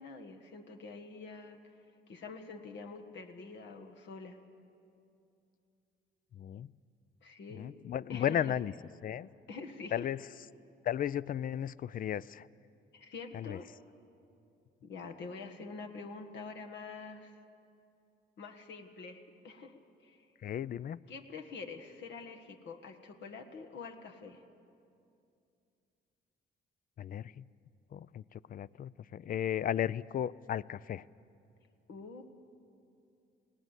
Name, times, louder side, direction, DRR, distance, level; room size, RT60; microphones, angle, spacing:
voice 1, 0.0-1.6 2.1-4.4 7.2-7.8 8.1-8.5 9.5-10.1 12.9-13.7 14.8-17.3 18.4-19.2 19.4-20.2 21.1-24.4 31.9-32.2, left 4 dB, 65° left, 4 dB, 1.5 m, -46 dB
voice 2, 6.3-6.7 7.5-8.7 9.0-9.3 9.9-10.2 10.8-12.5 13.3-13.6 20.4-21.0 27.0-27.5 27.9-31.0, left 10 dB, 45° left, 21 dB, 0.4 m, -35 dB
20.0 x 17.0 x 8.2 m, 2.6 s
cardioid pair, 90°, 20 cm